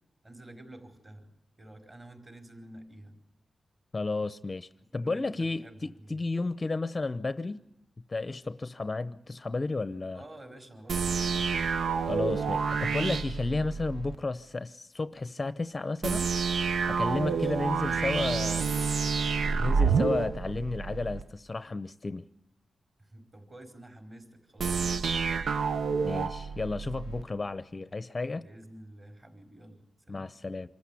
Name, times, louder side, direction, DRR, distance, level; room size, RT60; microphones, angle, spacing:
voice 1, 0.2-1.3 1.6-3.1 4.9-6.2 10.1-11.5 17.2-18.3 23.0-25.6 28.3-30.3, right 1 dB, 30° right, 4.7 m, -50 dB
voice 2, 3.9-7.6 8.1-10.2 12.0-16.3 16.8-18.7 19.6-22.3 26.0-28.5 30.1-30.7, left 3 dB, 30° left, 0.7 m, -32 dB
sound 1, 10.9-14.2 16.0-21.2 24.6-27.2, right 5 dB, 80° right, 0.7 m, -29 dB
26.0 x 14.5 x 8.5 m
wide cardioid pair, 105°, 0 cm